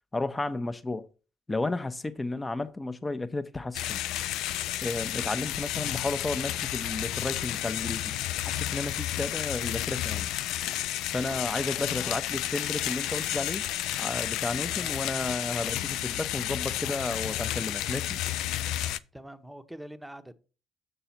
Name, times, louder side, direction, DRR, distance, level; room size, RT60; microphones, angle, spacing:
voice 1, 0.1-1.1 1.5-4.0 4.8-8.1 8.4-10.3 11.1-13.6 14.0-18.2, left 2 dB, 20° left, 0.9 m, -33 dB
sound 1, 3.7-19.0, left 13 dB, 75° left, 0.3 m, -31 dB
voice 2, 11.8-12.1 14.7-15.0 19.1-20.3, right 1 dB, 5° right, 0.9 m, -44 dB
6.8 x 6.8 x 4.4 m
hypercardioid pair, 50°, 0 cm